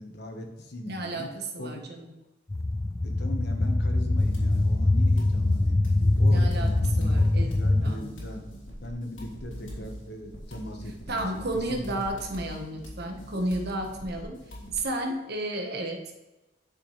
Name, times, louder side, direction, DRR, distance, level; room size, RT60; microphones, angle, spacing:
voice 1, 0.0-1.3 1.6-1.7 3.0-5.8 6.2-7.3 7.5-8.4 8.8-12.0, left 1 dB, 60° left, 4 dB, 1.3 m, -39 dB
voice 2, 0.8-2.1 6.3-8.1 11.1-14.4 14.7-16.1, right 1 dB, 60° right, 4 dB, 1.3 m, -32 dB
sound 1, 2.5-7.9, left 2 dB, 15° left, 0.3 m, -23 dB
sound 2, 4.2-14.8, equal, 90° left, 2.9 m, -42 dB
9.6 x 6.4 x 3.2 m, 1.0 s
head